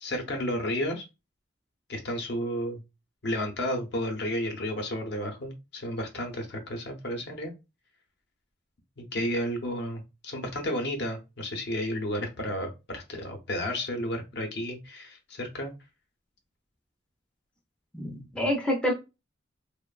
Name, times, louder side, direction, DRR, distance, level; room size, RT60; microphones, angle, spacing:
voice 1, 0.0-1.0 1.9-2.8 3.2-7.5 9.0-15.7, equal, 60° left, 3 dB, 0.6 m, -32 dB
voice 2, 17.9-18.9, left 1 dB, 5° left, 0 dB, 0.4 m, -27 dB
2.9 x 2.0 x 2.3 m, 0.26 s
head